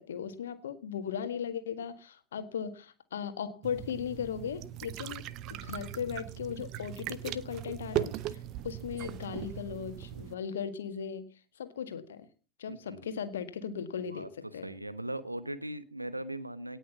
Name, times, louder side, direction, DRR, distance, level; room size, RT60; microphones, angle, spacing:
voice 1, 0.0-8.4 8.6-11.3 11.6-12.3 12.6-14.3 14.5-14.7, left 7 dB, 65° left, 10 dB, 1.7 m, -37 dB
sound 1, 3.6-10.3, right 12 dB, 40° right, 0.8 m, -39 dB
voice 2, 12.7-13.2 14.0-14.3 14.6-16.8, right 1 dB, 85° right, 15 dB, 1.1 m, -39 dB
18.0 x 6.3 x 7.4 m, 0.39 s
figure-of-eight pair, 90°, 0 cm